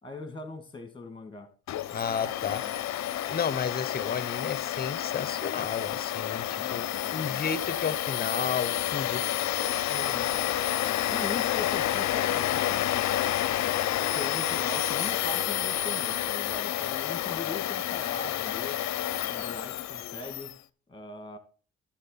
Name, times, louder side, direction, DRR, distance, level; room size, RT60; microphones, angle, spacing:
voice 1, 0.0-1.5 2.6-2.8 6.5-7.4 9.9-10.3 11.1-12.8 14.0-18.8 19.3-20.5 20.9-21.4, left 3 dB, 15° left, 8 dB, 2.3 m, -41 dB
Domestic sounds home sounds, 1.7-20.5, left 12 dB, 65° left, 0.6 m, -29 dB
voice 2, 1.9-2.6 3.3-9.2, left 6 dB, 30° left, 16 dB, 0.8 m, -32 dB
11.0 x 7.6 x 4.1 m, 0.39 s
cardioid pair, 90°, 30 cm